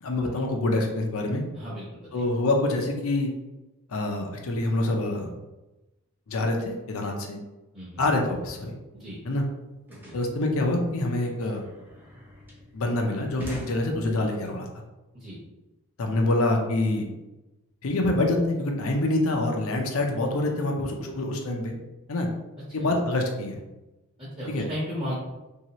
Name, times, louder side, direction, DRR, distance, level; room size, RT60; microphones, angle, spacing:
voice 1, 0.0-1.4 2.1-3.3 3.9-5.3 6.3-7.4 8.0-8.7 9.2-9.4 10.1-11.6 12.7-14.7 16.0-17.1 17.8-21.7 22.1-22.3 22.7-23.6 24.5-24.7, left 2 dB, 70° left, 2 dB, 0.5 m, -26 dB
voice 2, 1.5-2.1 7.7-8.1 8.9-9.2 10.0-10.1 15.1-15.4 22.8-22.9 24.2-25.1, equal, 25° right, -9 dB, 0.9 m, -35 dB
sound 1, 9.0-9.1 9.3-14.5, right 1 dB, 10° right, 0.5 m, -43 dB
3.1 x 2.8 x 2.9 m, 1.0 s
head